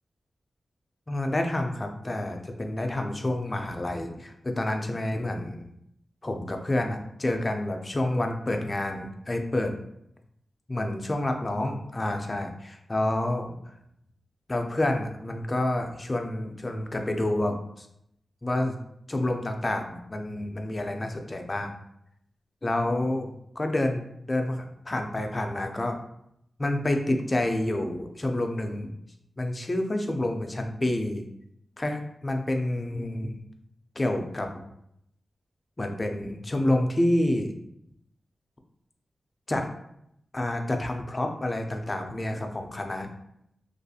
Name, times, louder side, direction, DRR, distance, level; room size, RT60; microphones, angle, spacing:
voice 1, 1.1-5.7 6.2-9.8 10.7-13.5 14.5-17.9 18.4-18.8 19.1-21.7 22.6-26.0 26.6-28.9 29.4-31.2 31.8-33.4 34.0-34.5 35.8-37.5 39.5-39.7 40.3-43.1, left 1 dB, 30° left, 4 dB, 0.4 m, -28 dB
2.5 x 2.3 x 2.7 m, 0.76 s
wide cardioid pair, 75°, 0 cm